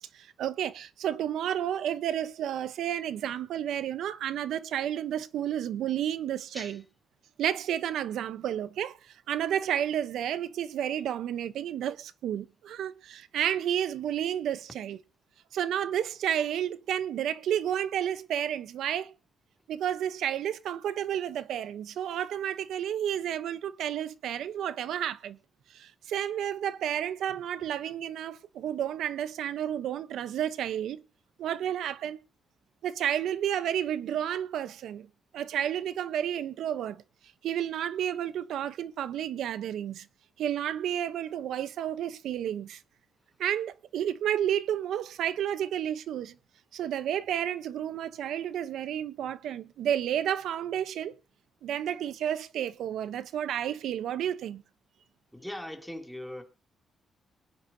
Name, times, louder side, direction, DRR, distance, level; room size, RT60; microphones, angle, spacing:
voice 1, 0.1-6.8 7.4-15.0 15.5-19.1 19.7-25.4 25.7-31.0 31.4-32.2 32.8-35.1 35.3-37.0 37.4-40.1 40.4-42.8 43.4-46.4 46.7-51.1 51.6-54.6, right 10 dB, 85° right, 0.9 m, -31 dB
voice 2, 55.3-56.4, left 1 dB, ahead, 2.8 m, -40 dB
23.5 x 9.5 x 2.8 m
cardioid pair, 105°, 0 cm